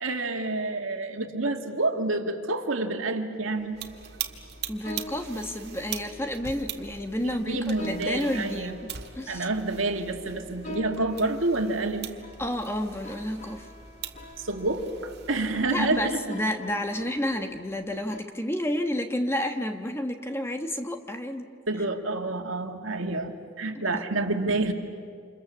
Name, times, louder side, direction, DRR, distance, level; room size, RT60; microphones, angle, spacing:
voice 1, 0.0-3.8 7.2-8.7 9.3-12.1 14.4-16.2 21.7-24.7, right 2 dB, 80° right, 4 dB, 2.1 m, -28 dB
sound 1, 3.6-18.2, left 2 dB, 35° left, 1.3 m, -46 dB
sound 2, 3.8-16.1, right 8 dB, 55° right, 1.6 m, -42 dB
voice 2, 4.7-8.8 9.2-9.5 12.4-13.7 15.7-21.8 23.9-24.0, left 1 dB, 10° left, 5 dB, 1.3 m, -30 dB
28.5 x 27.0 x 7.1 m, 2.2 s
head